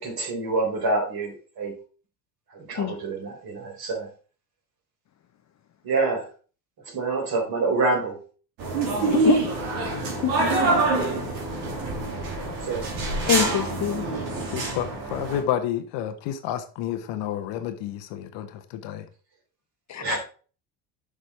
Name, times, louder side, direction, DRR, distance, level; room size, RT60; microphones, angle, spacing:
voice 1, 0.0-1.7 2.5-4.1 5.8-6.2 6.9-8.2 8.8-9.0 12.4-13.0 20.0-20.2, right 3 dB, 45° right, 3.7 m, -27 dB
sound 1, 8.6-15.4, right 3 dB, 65° right, 2.7 m, -25 dB
voice 2, 9.1-9.4 10.2-10.3 13.3-14.0 19.9-20.2, left 10 dB, 35° left, 0.7 m, -24 dB
voice 3, 14.5-19.0, left 10 dB, 55° left, 1.0 m, -30 dB
6.7 x 5.0 x 4.7 m
hypercardioid pair, 65°, 50 cm